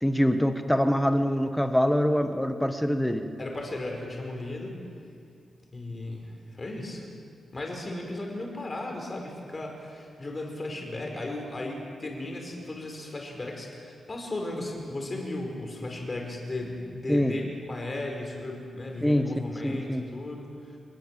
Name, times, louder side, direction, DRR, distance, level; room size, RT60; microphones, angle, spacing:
voice 1, 0.0-3.3 17.1-17.3 19.0-19.3 19.6-20.0, equal, 5° left, 7 dB, 1.5 m, -24 dB
voice 2, 3.4-4.8 5.7-7.1 7.5-20.8, left 2 dB, 25° left, 1 dB, 5.3 m, -36 dB
27.5 x 20.0 x 7.8 m, 2.4 s
wide cardioid pair, 140°, 0 cm